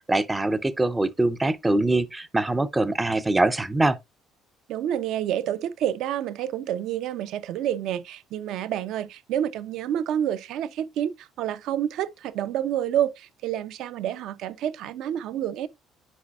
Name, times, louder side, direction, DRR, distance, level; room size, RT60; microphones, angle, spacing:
voice 1, 0.1-4.0, right 2 dB, 10° right, 0.4 m, -23 dB
voice 2, 4.7-15.7, right 10 dB, 60° right, 0.6 m, -28 dB
8.3 x 5.2 x 2.4 m
cardioid pair, 165°, 0 cm